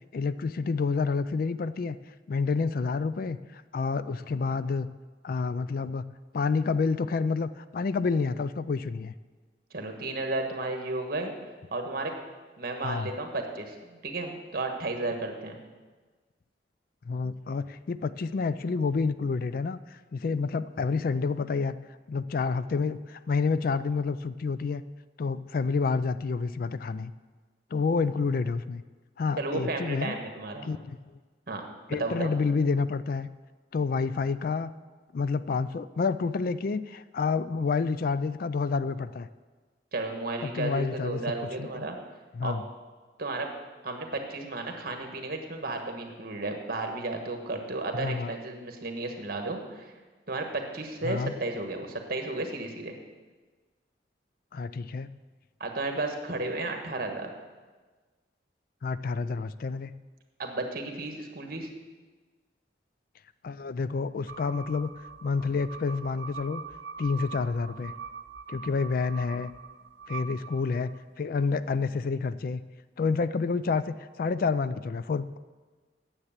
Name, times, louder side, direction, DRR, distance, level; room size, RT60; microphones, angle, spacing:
voice 1, 0.1-2.0 2.3-4.9 5.2-6.0 6.3-9.1 12.8-13.1 17.1-21.8 22.1-24.8 25.2-27.1 27.7-28.8 29.2-30.1 30.6-31.0 31.9-33.3 33.7-34.7 35.1-39.3 40.4-41.9 42.3-42.6 47.9-48.3 51.0-51.3 54.5-55.1 58.8-59.9 63.4-64.9 65.2-66.6 67.0-67.9 68.5-69.5 70.1-70.9 71.2-72.6 73.0-75.4, left 4 dB, 50° left, 15 dB, 0.4 m, -29 dB
voice 2, 9.7-11.3 11.7-12.1 12.6-15.6 29.4-30.7 31.5-31.6 31.9-32.3 39.9-42.0 42.4-42.5 43.2-43.5 43.8-49.9 50.3-52.9 55.6-57.3 60.4-61.7, right 2 dB, 55° right, 4 dB, 1.4 m, -33 dB
bass clarinet vibrato, 64.3-71.0, right 6 dB, 75° right, 0.6 m, -43 dB
9.7 x 7.4 x 7.3 m, 1.4 s
head